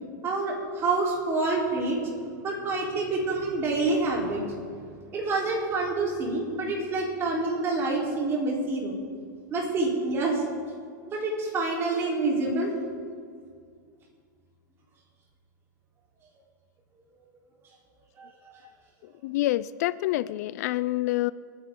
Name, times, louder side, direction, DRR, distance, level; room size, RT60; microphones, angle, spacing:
voice 1, 0.2-2.0 2.4-4.8 5.1-9.0 9.5-10.4 11.1-12.7 18.2-18.3, right 3 dB, 25° right, -2 dB, 3.7 m, -27 dB
voice 2, 19.0-21.3, left 16 dB, 55° left, 16 dB, 0.4 m, -27 dB
29.0 x 10.0 x 3.8 m, 2.2 s
supercardioid pair, 150°, 10 cm